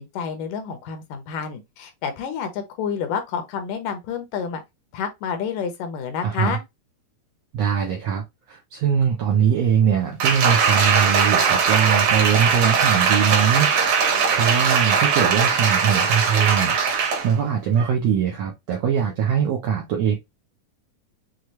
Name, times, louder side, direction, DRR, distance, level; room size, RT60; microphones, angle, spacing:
voice 1, 0.0-4.6 4.9-6.6, left 7 dB, 75° left, 2.2 m, -29 dB
voice 2, 6.2-6.6 7.5-8.2 8.5-13.7 14.0-20.2, right 8 dB, 80° right, 1.5 m, -22 dB
Applause, 10.2-17.3 17.8-17.9, right 6 dB, 60° right, 2.2 m, -20 dB
6.4 x 2.3 x 2.9 m
omnidirectional pair, 3.9 m